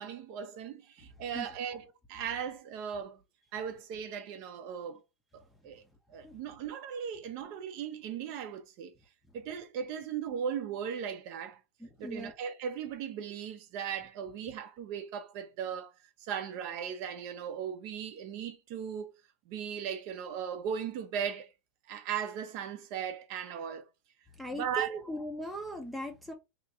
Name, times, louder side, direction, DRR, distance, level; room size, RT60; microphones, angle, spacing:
voice 1, 0.0-1.8 2.1-3.2 3.5-5.0 5.3-5.8 6.1-8.9 9.3-11.6 12.0-15.9 16.2-19.2 19.5-21.5 21.9-23.9 24.5-25.0, right 8 dB, 40° right, 0.6 m, -37 dB
voice 2, 11.8-12.3 24.3-26.3, right 1 dB, ahead, 0.6 m, -39 dB
2.9 x 2.4 x 4.2 m
supercardioid pair, 150°, 9 cm